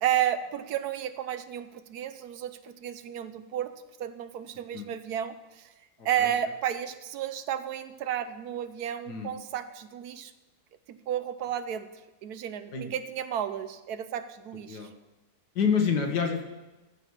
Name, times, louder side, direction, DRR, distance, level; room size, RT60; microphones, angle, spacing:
voice 1, 0.0-3.7 4.0-5.7 6.0-10.3 10.9-11.9 12.2-14.9, right 10 dB, 75° right, 11 dB, 1.2 m, -32 dB
voice 2, 6.0-6.3 9.1-9.3 12.7-12.9 14.7-14.9 15.6-16.5, left 6 dB, 90° left, 3 dB, 1.9 m, -28 dB
14.0 x 4.7 x 7.1 m, 1.1 s
omnidirectional pair, 1.7 m